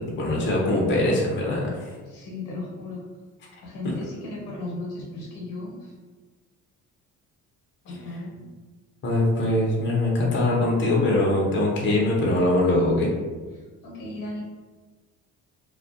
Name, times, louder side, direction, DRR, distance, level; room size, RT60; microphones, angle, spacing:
voice 1, 0.2-1.9 9.0-13.1, left 1 dB, 35° left, -3 dB, 0.6 m, -22 dB
voice 2, 2.1-3.0 3.6-5.9 7.8-8.4 13.8-14.5, left 2 dB, 75° left, -2 dB, 0.9 m, -35 dB
2.2 x 2.1 x 2.5 m, 1.3 s
cardioid pair, 85°, 32 cm